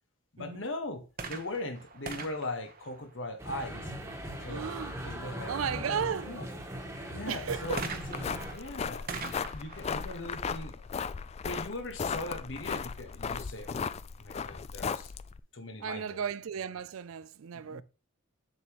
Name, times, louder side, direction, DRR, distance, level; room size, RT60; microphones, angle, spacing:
voice 1, 0.3-3.9 4.4-6.4 7.1-10.8 11.4-13.9 14.2-15.1 15.5-16.2 17.5-17.8, left 2 dB, 65° left, 1.4 m, -40 dB
sound 1, 1.1-3.7 7.8-11.4 12.2-12.3, right 4 dB, 45° right, 1.0 m, -43 dB
sound 2, 3.4-8.6, equal, 15° right, 1.5 m, -40 dB
voice 2, 4.5-5.0 5.5-6.3 7.3-7.8 15.8-17.8, right 7 dB, 85° right, 0.4 m, -35 dB
sound 3, 7.5-15.4, left 6 dB, 30° left, 0.3 m, -36 dB
7.9 x 7.0 x 3.0 m
head